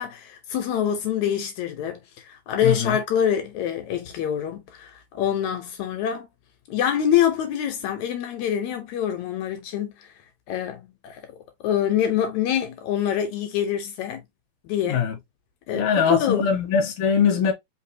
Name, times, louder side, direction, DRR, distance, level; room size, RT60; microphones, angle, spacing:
voice 1, 0.0-6.3 6.7-10.1 10.5-11.2 11.6-14.2 14.6-15.1 15.7-16.5, left 9 dB, 80° left, 2.2 m, -25 dB
voice 2, 2.6-3.0 14.9-15.2 15.7-17.5, left 6 dB, 60° left, 2.0 m, -22 dB
4.9 x 3.4 x 2.7 m
omnidirectional pair, 3.3 m